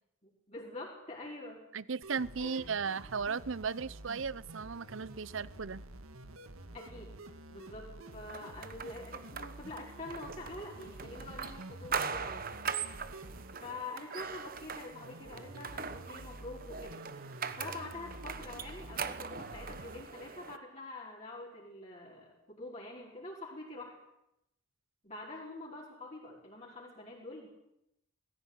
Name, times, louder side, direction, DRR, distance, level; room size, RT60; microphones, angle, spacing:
voice 1, 0.2-1.7 2.4-2.7 6.7-7.2 7.5-12.6 13.6-17.0 17.6-24.0 25.0-27.5, left 2 dB, 30° left, -5 dB, 4.9 m, -46 dB
voice 2, 1.7-5.8, right 5 dB, 65° right, 19 dB, 0.7 m, -36 dB
sound 1, 2.0-20.0, right 1 dB, 85° right, 2.0 m, -49 dB
sound 2, 8.3-20.6, right 6 dB, 40° right, 1.1 m, -41 dB
19.0 x 16.5 x 10.0 m, 0.83 s
head